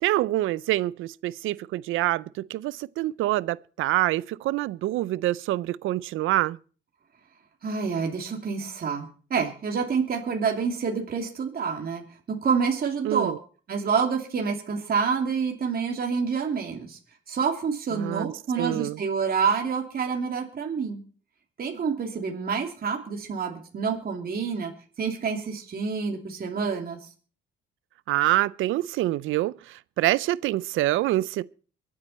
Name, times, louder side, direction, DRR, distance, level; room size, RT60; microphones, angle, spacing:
voice 1, 0.0-6.6 13.0-13.4 17.9-18.3 18.6-19.0 28.1-31.4, right 15 dB, 85° right, 0.6 m, -26 dB
voice 2, 7.6-12.0 12.3-13.3 13.7-17.0 17.3-21.0 21.6-24.7 25.0-27.0, right 5 dB, 50° right, 2.9 m, -27 dB
23.5 x 8.7 x 4.3 m
cardioid pair, 90°, 20 cm